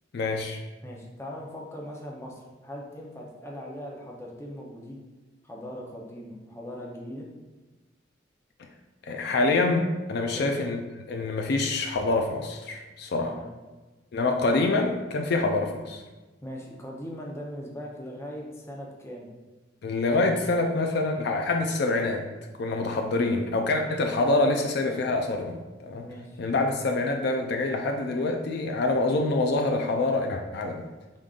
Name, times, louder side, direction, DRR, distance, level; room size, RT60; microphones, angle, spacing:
voice 1, 0.1-0.6 9.0-13.3 14.1-16.0 19.8-22.2 22.6-26.1 26.4-30.8, left 2 dB, 60° left, 3 dB, 0.4 m, -26 dB
voice 2, 0.8-5.0 5.4-7.3 10.3-10.5 13.2-13.5 16.4-19.3 26.0-26.4, equal, 15° left, -2 dB, 0.7 m, -40 dB
5.1 x 3.7 x 2.4 m, 1.2 s
head